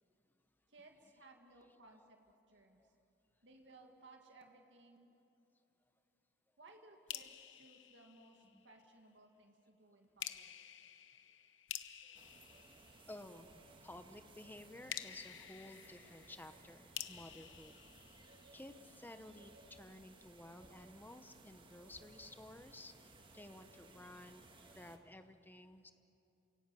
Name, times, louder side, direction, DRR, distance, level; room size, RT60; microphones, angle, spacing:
voice 1, 0.7-2.2 2.5-2.8 3.4-5.1 6.6-10.5, right 2 dB, 75° right, 3 dB, 2.0 m, -61 dB
sound 1, 7.1-8.8 10.2-13.5 14.9-18.8, left 11 dB, 90° left, 0.9 m, -50 dB
sound 2, 12.1-25.0, right 2 dB, 25° right, 1.6 m, -61 dB
voice 2, 12.7-13.5 13.8-17.8 18.5-22.9 23.3-25.9, left 1 dB, 10° left, 9 dB, 0.9 m, -54 dB
28.0 x 17.5 x 7.6 m, 2.8 s
head